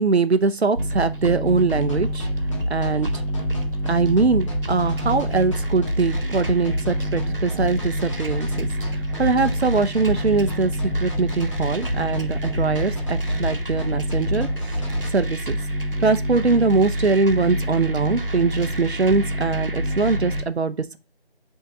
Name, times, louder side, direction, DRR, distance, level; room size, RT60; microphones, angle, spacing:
voice 1, 0.0-2.3 2.7-3.2 3.9-14.5 14.8-15.6 16.0-21.0, right 4 dB, 85° right, 0.7 m, -22 dB
sound 1, 0.8-20.4, equal, 60° right, 1.0 m, -27 dB
sound 2, 1.9-15.1, left 1 dB, 30° left, 1.5 m, -31 dB
5.7 x 3.7 x 5.5 m
figure-of-eight pair, 175°, 31 cm